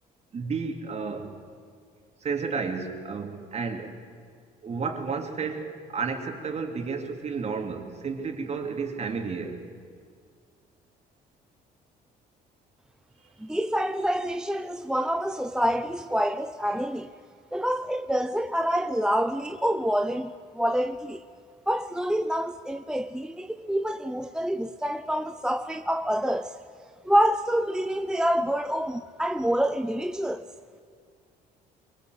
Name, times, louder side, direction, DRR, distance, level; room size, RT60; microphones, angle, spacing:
voice 1, 0.3-1.3 2.2-3.9 4.6-9.6 23.6-23.7, right 5 dB, 40° right, 3.0 m, -32 dB
voice 2, 13.4-17.1 17.5-21.2 21.7-26.6 27.0-30.5, equal, 5° right, 0.6 m, -27 dB
24.0 x 22.0 x 8.1 m
cardioid pair, 110°, 17 cm